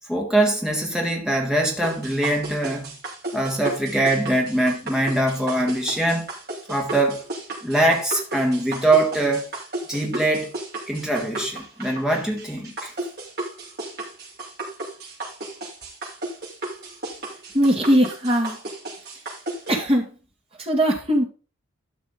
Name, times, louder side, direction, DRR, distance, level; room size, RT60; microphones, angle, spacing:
voice 1, 0.1-2.9 3.3-6.3 6.7-7.2 7.6-9.5 9.9-10.5 10.9-12.9, right 1 dB, 5° right, 1.8 m, -22 dB
sound 1, 1.8-19.7, right 2 dB, 45° right, 4.2 m, -34 dB
voice 2, 17.5-18.6 19.7-20.1 20.6-21.3, equal, 25° right, 2.4 m, -20 dB
12.5 x 5.9 x 3.8 m
head